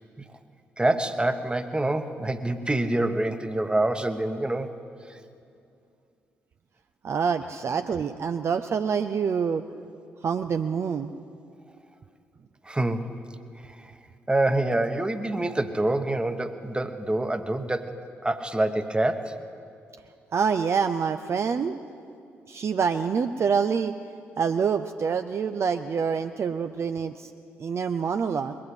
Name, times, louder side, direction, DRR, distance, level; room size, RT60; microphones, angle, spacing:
voice 1, 0.8-4.7 5.1-5.2 12.6-13.1 13.6-13.9 14.3-18.0 18.2-19.3, right 1 dB, 15° right, 9 dB, 1.1 m, -26 dB
voice 2, 7.0-9.6 10.2-11.1 20.3-21.8 22.5-23.9 24.4-27.3 27.6-28.6, right 6 dB, 45° right, 8 dB, 0.5 m, -26 dB
21.0 x 8.5 x 7.9 m, 2.4 s
hypercardioid pair, 40°, 6 cm